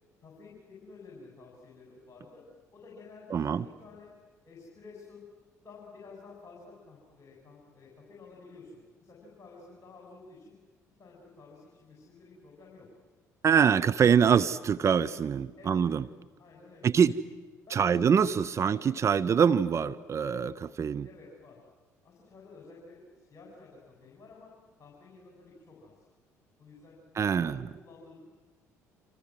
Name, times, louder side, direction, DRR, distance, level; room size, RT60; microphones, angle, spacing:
voice 1, 0.2-2.4 2.7-4.1 4.4-5.2 5.6-10.5 11.0-12.9 15.6-15.8 16.4-17.0 17.7-18.2 18.5-18.8 21.0-21.6 22.0-24.5 24.8-26.1 26.6-28.2, left 4 dB, 35° left, -3 dB, 7.7 m, -52 dB
voice 2, 3.3-3.6 13.4-16.0 16.8-17.1 17.7-21.1 27.2-27.6, right 7 dB, 35° right, 11 dB, 0.8 m, -24 dB
28.5 x 27.0 x 7.8 m, 1.3 s
figure-of-eight pair, 50°, 8 cm